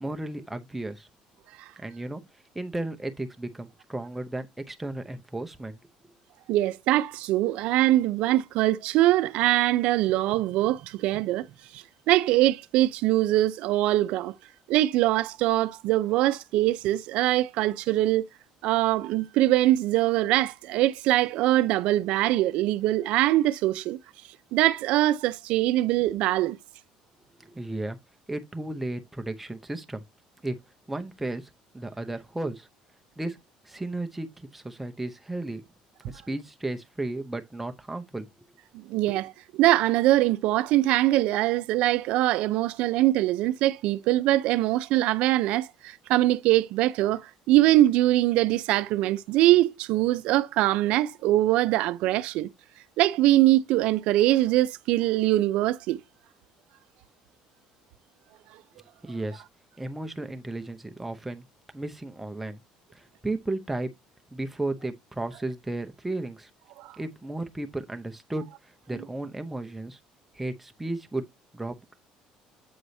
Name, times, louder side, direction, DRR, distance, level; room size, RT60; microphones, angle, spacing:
voice 1, 0.0-1.1 1.8-2.2 2.5-5.8 27.4-28.0 28.3-30.0 30.4-30.6 30.9-32.7 33.2-33.4 33.6-35.6 36.0-38.5 59.0-59.4 59.8-61.4 61.7-62.6 62.9-63.9 64.3-66.5 67.0-70.0 70.3-71.3 71.5-71.9, right 2 dB, 5° right, 0.7 m, -34 dB
voice 2, 6.5-11.5 11.7-14.3 14.7-18.2 18.6-24.0 24.5-26.6 38.9-52.5 53.0-56.0 66.8-66.9, right 15 dB, 70° right, 0.5 m, -23 dB
7.8 x 4.8 x 2.7 m
cardioid pair, 145°, 2 cm